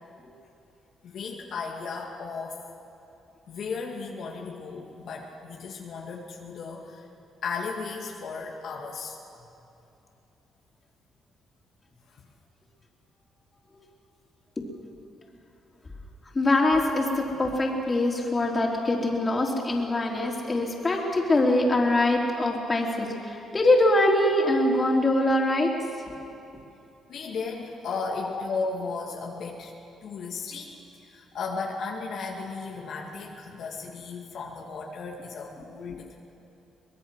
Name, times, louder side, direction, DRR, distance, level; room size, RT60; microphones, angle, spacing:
voice 1, 1.0-2.6 3.5-7.0 7.4-9.2 12.1-12.2 27.1-29.7 30.0-36.2, left 4 dB, 70° left, -1 dB, 2.2 m, -35 dB
voice 2, 16.3-25.7, left 1 dB, 25° left, 0 dB, 3.6 m, -23 dB
24.0 x 20.0 x 6.4 m, 2.8 s
cardioid pair, 90°, 0 cm